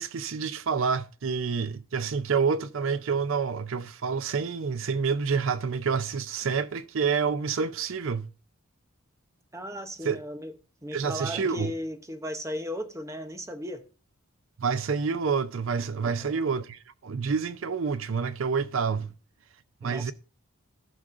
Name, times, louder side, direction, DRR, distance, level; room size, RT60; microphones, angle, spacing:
voice 1, 0.0-8.3 10.0-10.2 10.9-11.7 14.6-19.1 19.8-20.1, right 5 dB, 65° right, 0.5 m, -28 dB
voice 2, 9.5-10.5 10.8-13.8 16.0-16.5 19.8-20.1, equal, 15° right, 0.8 m, -36 dB
15.5 x 6.2 x 2.5 m
head